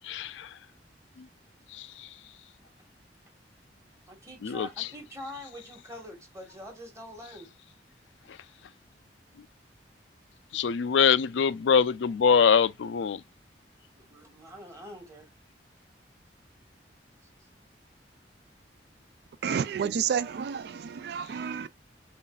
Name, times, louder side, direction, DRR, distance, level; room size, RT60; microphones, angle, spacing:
voice 1, 0.0-0.5 1.2-1.3 1.7-2.1 4.4-4.9 10.5-13.2, left 6 dB, 85° left, 0.4 m, -24 dB
voice 2, 4.1-7.5 13.9-15.3 17.4-17.5, equal, 15° right, 1.4 m, -44 dB
voice 3, 19.4-21.7, right 7 dB, 60° right, 0.3 m, -30 dB
6.9 x 2.5 x 2.3 m
head